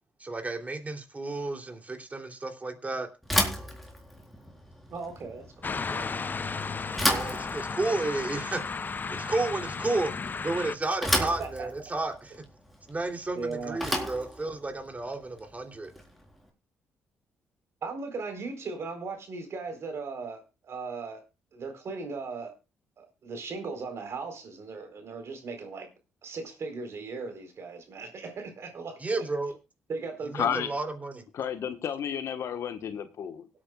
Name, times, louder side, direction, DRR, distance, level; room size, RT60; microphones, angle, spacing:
voice 1, 0.2-3.1 7.0-8.8 9.1-10.1 10.4-12.4 12.9-15.9 29.0-29.5 30.3-31.2, right 2 dB, 25° right, 5 dB, 3.2 m, -32 dB
Bicycle / Thump thud, 3.2-16.3, equal, ahead, 4.2 m, -33 dB
voice 2, 4.9-6.1 11.2-11.7 13.3-13.8 17.8-21.2 21.5-22.5 23.0-25.9 26.2-29.3 29.9-30.5, right 4 dB, 55° right, 5 dB, 4.2 m, -38 dB
sound 1, 5.6-10.8, left 4 dB, 35° left, 0.8 m, -34 dB
voice 3, 30.3-30.7 31.3-33.5, left 8 dB, 60° left, 9 dB, 1.4 m, -31 dB
24.5 x 8.8 x 2.4 m, 0.29 s
hypercardioid pair, 50°, 5 cm